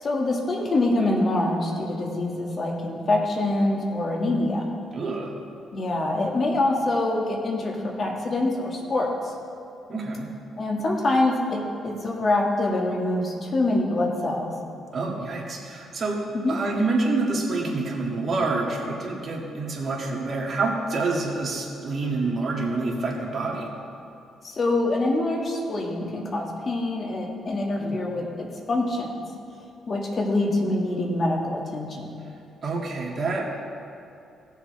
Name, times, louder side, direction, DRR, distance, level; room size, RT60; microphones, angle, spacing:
voice 1, 0.0-4.7 5.7-9.3 10.6-14.5 16.3-16.6 24.4-29.3 29.9-32.1, left 2 dB, 45° left, 0 dB, 1.8 m, -25 dB
voice 2, 4.9-5.3 9.9-10.3 14.9-23.7 27.8-28.0 32.6-33.6, right 3 dB, 45° right, -2 dB, 2.0 m, -27 dB
17.0 x 7.0 x 3.3 m, 2.6 s
cardioid pair, 90°, 0 cm